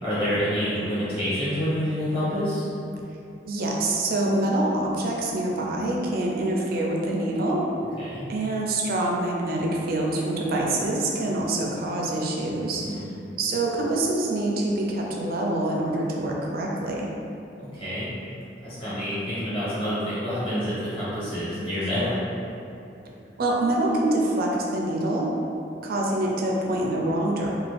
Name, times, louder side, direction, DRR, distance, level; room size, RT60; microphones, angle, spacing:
voice 1, 0.0-2.6 8.0-8.3 12.8-13.1 17.6-18.1 18.6-22.2, equal, 30° left, -13 dB, 1.2 m, -27 dB
voice 2, 3.5-7.6 8.3-12.9 13.4-17.1 23.4-25.3 25.8-27.5, right 1 dB, 55° right, -2 dB, 0.4 m, -25 dB
2.5 x 2.3 x 3.3 m, 2.7 s
head